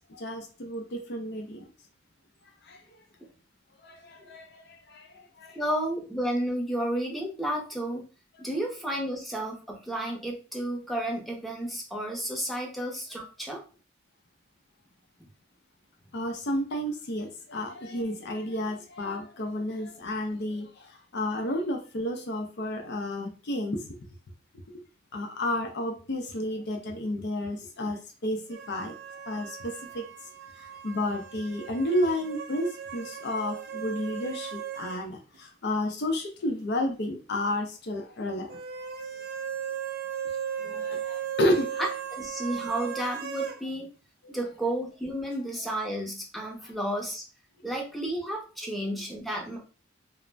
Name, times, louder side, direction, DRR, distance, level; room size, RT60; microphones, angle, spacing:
voice 1, 0.1-1.7 2.7-2.8 3.8-5.1 5.4-5.6 16.1-23.8 25.1-28.9 29.3-30.0 30.6-38.6 40.6-41.8 44.2-44.3 46.6-46.7, left 1 dB, 60° left, 0.5 m, -31 dB
voice 2, 5.6-8.1 8.4-13.6 42.1-43.9 44.3-47.2 47.6-49.6, right 1 dB, ahead, 0.6 m, -32 dB
sound 1, 28.5-35.1 35.3-35.4 38.5-43.6, right 8 dB, 55° right, 0.4 m, -37 dB
2.4 x 2.1 x 3.1 m
head